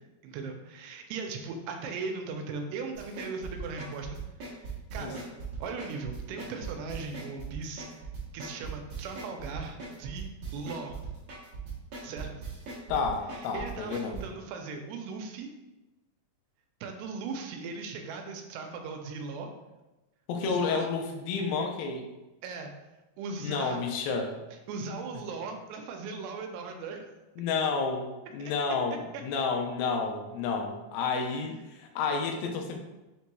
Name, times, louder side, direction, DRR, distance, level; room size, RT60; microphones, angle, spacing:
voice 1, 0.2-4.5 4.9-5.2 5.6-11.0 12.0-12.3 13.5-15.5 16.8-19.5 20.4-20.9 22.4-22.7 23.2-23.8 24.7-27.1 28.4-28.5, right 4 dB, 85° right, 4 dB, 2.5 m, -38 dB
sound 1, 2.9-14.2, right 4 dB, 70° right, 1.5 m, -39 dB
voice 2, 12.9-14.3 20.3-22.0 23.4-24.4 27.4-32.8, left 4 dB, 80° left, 3 dB, 2.2 m, -30 dB
6.4 x 3.0 x 2.2 m, 1.1 s
omnidirectional pair, 4.6 m